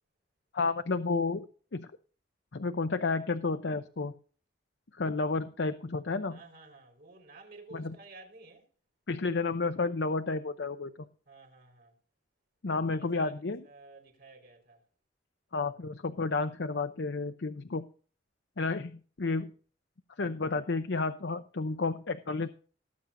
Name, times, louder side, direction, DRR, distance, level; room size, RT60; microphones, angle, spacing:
voice 1, 0.5-1.5 1.7-1.9 2.5-4.1 5.0-6.4 7.7-8.0 9.1-10.9 12.6-13.6 15.5-17.9 18.6-19.5 20.2-22.5, left 3 dB, 70° left, 0.7 m, -31 dB
voice 2, 6.3-8.7 11.3-11.9 13.0-13.4 13.6-14.8, right 3 dB, 60° right, 4.6 m, -52 dB
19.0 x 8.7 x 2.6 m
head